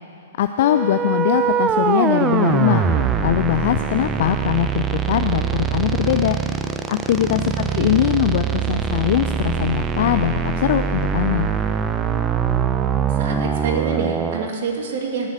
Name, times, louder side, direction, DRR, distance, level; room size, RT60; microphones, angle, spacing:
voice 1, 0.4-2.9 3.2-6.4 6.9-11.5, left 11 dB, 50° left, 8 dB, 0.5 m, -21 dB
sound 1, 0.6-14.5, right 7 dB, 20° right, 0.7 m, -22 dB
voice 2, 2.6-3.0 7.7-8.0 13.2-15.3, right 5 dB, 50° right, 1 dB, 2.5 m, -27 dB
17.5 x 7.2 x 9.0 m, 2.7 s
figure-of-eight pair, 110°, 0 cm